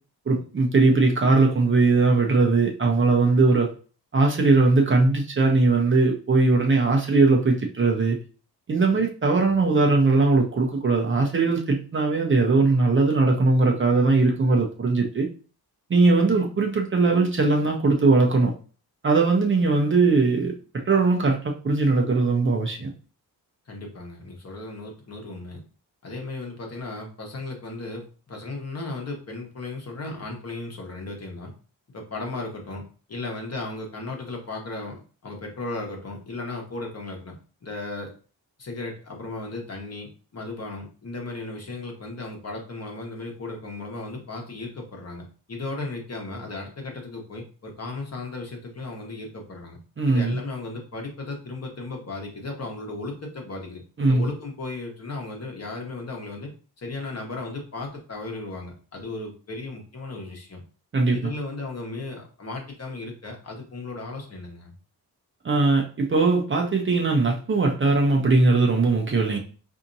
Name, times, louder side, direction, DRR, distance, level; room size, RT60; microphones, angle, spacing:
voice 1, 0.3-3.7 4.1-8.2 8.7-15.3 15.9-18.5 19.0-22.9 50.0-50.4 54.0-54.3 60.9-61.3 65.4-69.4, right 3 dB, 30° right, 1 dB, 0.7 m, -20 dB
voice 2, 23.7-25.6 26.0-31.5 31.9-32.8 33.1-38.1 38.6-49.8 50.1-56.5 56.8-60.6 61.1-64.7, left 2 dB, 40° left, 1 dB, 1.1 m, -35 dB
4.2 x 2.7 x 2.6 m, 0.38 s
cardioid pair, 115°, 38 cm